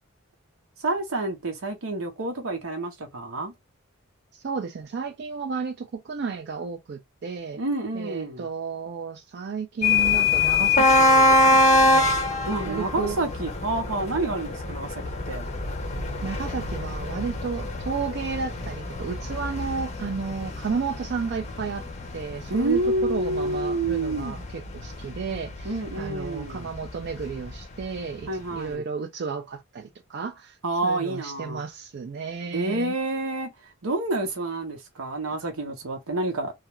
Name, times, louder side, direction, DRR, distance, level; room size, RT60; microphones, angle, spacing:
voice 1, 0.8-3.5 7.6-8.5 12.5-15.5 22.5-24.4 25.6-26.7 28.3-28.9 30.6-31.6 32.5-33.5 33.8-36.5, right 2 dB, 85° right, 0.8 m, -28 dB
voice 2, 4.4-7.6 7.9-12.2 12.7-13.2 16.2-21.8 22.1-30.6 30.8-32.9, right 5 dB, 50° right, 0.4 m, -33 dB
sound 1, 9.8-27.5, left 2 dB, 30° left, 0.5 m, -24 dB
2.4 x 2.2 x 2.9 m
head